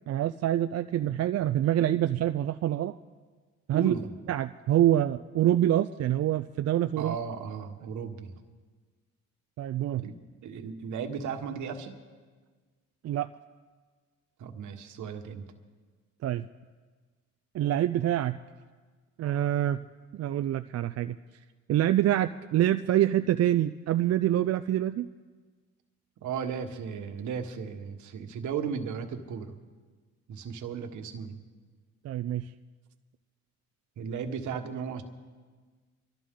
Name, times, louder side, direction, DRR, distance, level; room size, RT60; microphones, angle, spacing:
voice 1, 0.1-3.0 3.7-3.9 4.3-7.1 9.6-10.1 13.0-13.3 16.2-16.5 17.5-18.4 19.2-19.8 20.1-21.2 21.7-25.1 32.0-32.5, right 12 dB, 55° right, 10 dB, 0.5 m, -26 dB
voice 2, 3.7-4.1 7.0-8.3 10.0-10.2 10.4-12.0 14.4-15.5 26.2-29.6 30.3-31.4 34.0-35.0, right 6 dB, 75° right, 6 dB, 1.5 m, -35 dB
24.5 x 13.0 x 3.8 m, 1.5 s
cardioid pair, 90°, 30 cm